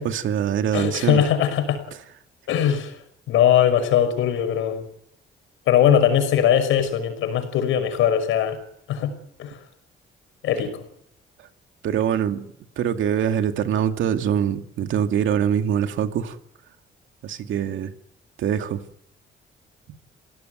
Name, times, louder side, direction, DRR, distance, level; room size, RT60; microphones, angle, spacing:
voice 1, 0.0-1.2 11.8-12.5 12.8-16.4 17.2-17.9 18.4-18.8, right 9 dB, 75° right, 6 dB, 2.4 m, -23 dB
voice 2, 0.7-1.8 2.5-3.0 3.3-4.9 5.7-8.6 8.9-9.1 9.4-9.6 10.4-10.8, left 9 dB, 90° left, 9 dB, 5.7 m, -20 dB
29.5 x 17.5 x 9.4 m, 0.76 s
cardioid pair, 90°, 20 cm